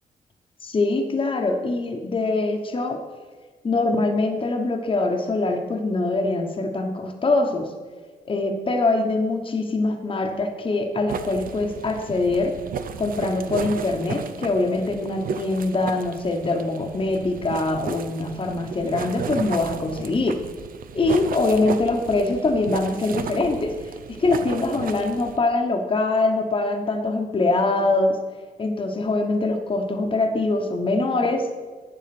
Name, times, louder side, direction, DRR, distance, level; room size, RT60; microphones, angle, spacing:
voice 1, 0.6-3.0 3.6-7.7 8.2-12.5 13.0-20.4 20.9-23.7 24.2-28.2 28.6-31.4, left 2 dB, 35° left, 3 dB, 1.1 m, -23 dB
sound 1, 11.1-25.4, right 7 dB, 60° right, 0.7 m, -34 dB
8.6 x 7.6 x 6.0 m, 1.4 s
cardioid pair, 100°, 16 cm